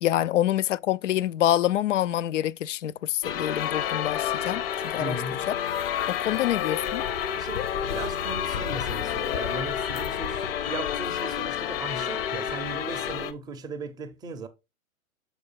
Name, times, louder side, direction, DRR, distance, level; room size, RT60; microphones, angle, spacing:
voice 1, 0.0-5.2 5.5-5.6 6.1-7.0, left 12 dB, 60° left, 0.5 m, -26 dB
sound 1, 3.2-13.3, left 9 dB, 45° left, 0.9 m, -29 dB
voice 2, 5.0-5.4 6.3-6.4 7.4-14.5, right 3 dB, 10° right, 0.6 m, -37 dB
6.7 x 4.9 x 4.5 m
figure-of-eight pair, 115°, 42 cm